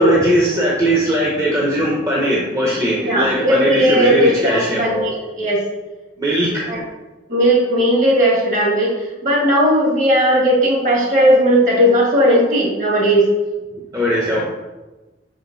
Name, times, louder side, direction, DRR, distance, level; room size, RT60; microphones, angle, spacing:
voice 1, 0.0-4.9 6.2-6.7 13.9-14.4, right 1 dB, 15° right, -4 dB, 0.9 m, -18 dB
voice 2, 3.1-5.6 6.7-6.8 7.3-13.3, equal, 40° right, -3 dB, 1.8 m, -16 dB
6.3 x 5.1 x 4.0 m, 1.1 s
head